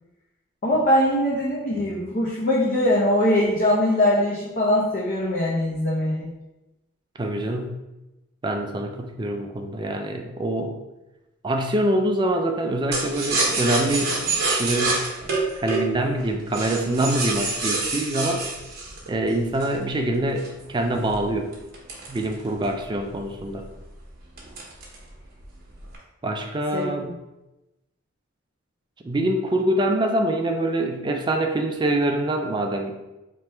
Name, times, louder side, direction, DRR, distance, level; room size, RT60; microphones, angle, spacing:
voice 1, 0.6-6.3 26.7-27.1, left 1 dB, 40° left, -5 dB, 0.6 m, -22 dB
voice 2, 7.2-7.8 8.4-10.8 11.4-14.2 14.5-15.0 15.6-18.4 19.1-21.5 22.1-23.6 26.2-27.1 29.0-32.9, right 1 dB, 20° right, 4 dB, 0.3 m, -25 dB
sound 1, 12.9-19.8 20.4-22.8 23.2-23.3 23.6-23.9 24.4-25.1 25.4-26.0, right 3 dB, 50° right, 1.0 m, -27 dB
3.4 x 2.9 x 4.4 m, 0.98 s
head